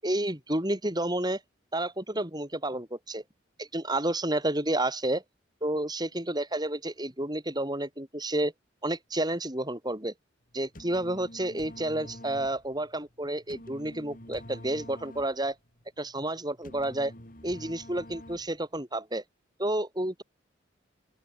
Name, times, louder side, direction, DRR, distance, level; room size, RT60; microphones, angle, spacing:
voice 1, 0.0-1.4 1.7-3.2 3.6-5.2 5.6-8.5 8.8-10.1 10.5-15.6 16.0-17.1 17.4-19.2 19.6-20.2, right 1 dB, 20° right, 7.3 m, -30 dB
sound 1, 10.5-18.8, left 1 dB, 45° left, 7.3 m, -47 dB
open air
head